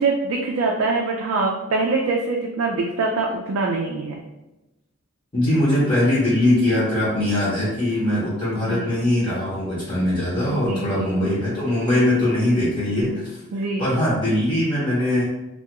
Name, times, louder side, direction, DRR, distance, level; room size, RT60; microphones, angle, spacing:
voice 1, 0.0-4.2 8.6-8.9 10.7-11.2 13.5-13.9, right 3 dB, 70° right, 0 dB, 0.3 m, -24 dB
voice 2, 5.3-13.4 13.8-15.2, left 1 dB, 25° left, -8 dB, 0.8 m, -21 dB
2.2 x 2.2 x 2.8 m, 1.0 s
head